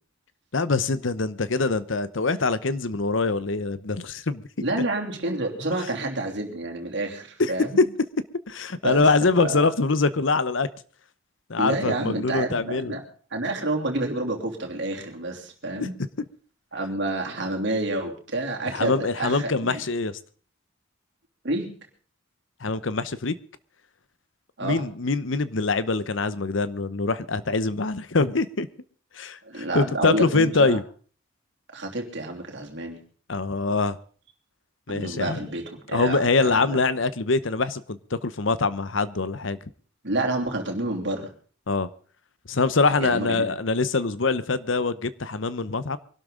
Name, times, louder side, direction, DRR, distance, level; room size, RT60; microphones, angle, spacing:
voice 1, 0.5-4.4 7.4-7.5 8.5-10.7 11.5-13.0 15.8-15.9 18.7-20.2 22.6-23.3 24.6-28.7 29.1-30.8 33.3-34.0 34.9-35.5 35.9-39.6 41.7-41.9 42.5-46.0, left 3 dB, 70° left, 15 dB, 0.9 m, -24 dB
voice 2, 4.6-7.8 8.8-9.1 9.4-9.6 11.6-13.0 13.3-16.0 16.7-19.8 21.4-21.7 24.6-24.8 29.4-30.8 31.7-33.0 34.9-36.8 40.0-41.3 43.0-43.5, right 2 dB, 60° right, 2 dB, 3.1 m, -29 dB
23.5 x 12.5 x 3.9 m, 0.43 s
head